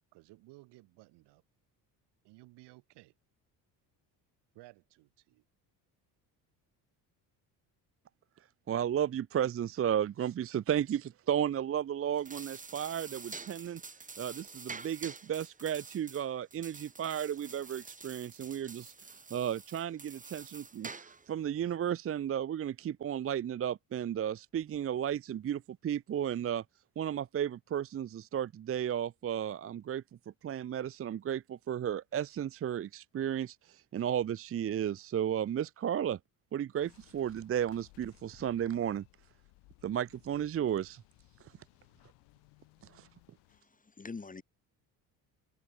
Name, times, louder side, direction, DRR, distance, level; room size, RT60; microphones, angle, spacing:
voice 1, 0.0-1.4 2.2-3.2 4.5-5.4, right 21 dB, 85° right, 7.5 m, -57 dB
voice 2, 8.7-13.8 14.2-26.6 27.0-30.0 30.4-36.2 36.5-39.0 39.8-41.0 42.9-43.1, right 9 dB, 35° right, 0.6 m, -34 dB
sound 1, 12.1-21.3, right 4 dB, 20° right, 1.9 m, -48 dB
sound 2, 36.8-43.6, left 24 dB, 90° left, 4.4 m, -62 dB
voice 3, 43.5-44.4, left 4 dB, 20° left, 2.1 m, -45 dB
cardioid pair, 95°, 40 cm